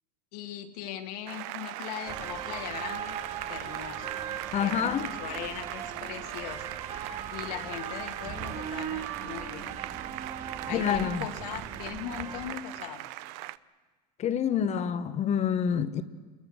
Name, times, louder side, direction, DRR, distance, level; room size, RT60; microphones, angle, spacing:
voice 1, 0.3-3.2 3.5-4.1 4.6-6.6 7.3-9.7 10.7-13.1, left 11 dB, 70° left, 2.0 m, -39 dB
Applause, 1.3-13.6, right 17 dB, 60° right, 0.7 m, -40 dB
sound 1, 2.1-12.5, right 7 dB, 35° right, 3.0 m, -39 dB
voice 2, 4.5-5.1 10.7-11.3 14.2-16.0, left 8 dB, 35° left, 1.2 m, -27 dB
28.0 x 22.0 x 6.4 m
supercardioid pair, 120°, 21 cm